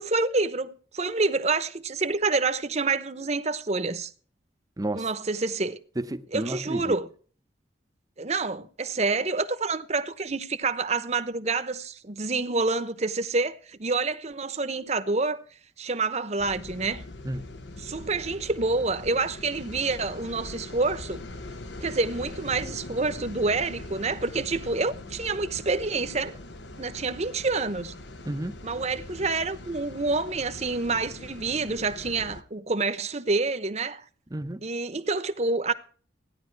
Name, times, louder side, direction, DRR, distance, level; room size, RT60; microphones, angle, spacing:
voice 1, 0.0-4.1 4.9-5.8 6.3-7.1 8.2-15.4 15.8-17.0 17.8-21.2 21.8-26.3 26.8-28.0 28.6-34.0 34.6-35.7, right 3 dB, 40° right, 1.0 m, -27 dB
voice 2, 4.8-5.1 6.0-7.0 17.2-17.5 28.2-28.6 34.3-34.6, right 1 dB, 20° right, 0.7 m, -31 dB
sound 1, 16.4-32.4, left 2 dB, 75° left, 1.1 m, -42 dB
15.5 x 10.5 x 4.7 m
head